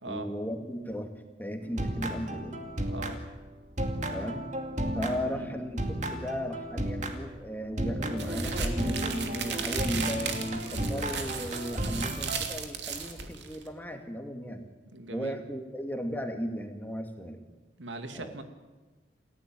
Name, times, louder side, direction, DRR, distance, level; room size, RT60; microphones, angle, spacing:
voice 1, 0.0-2.6 4.1-4.4 4.9-14.7 15.1-17.4 18.2-18.3, equal, 10° left, 4 dB, 2.3 m, -36 dB
sound 1, 1.6-3.5 3.8-7.4 7.8-12.4, right 1 dB, 40° right, 2.4 m, -34 dB
voice 2, 2.9-3.2 5.3-5.5 14.9-15.4 17.8-18.4, right 2 dB, 90° right, 7 dB, 2.4 m, -40 dB
Bowed string instrument, 8.1-13.0, right 2 dB, 25° right, 7.8 m, -57 dB
sound 2, 8.2-13.7, right 5 dB, 70° right, 2.8 m, -35 dB
29.0 x 15.5 x 9.2 m, 1.2 s
head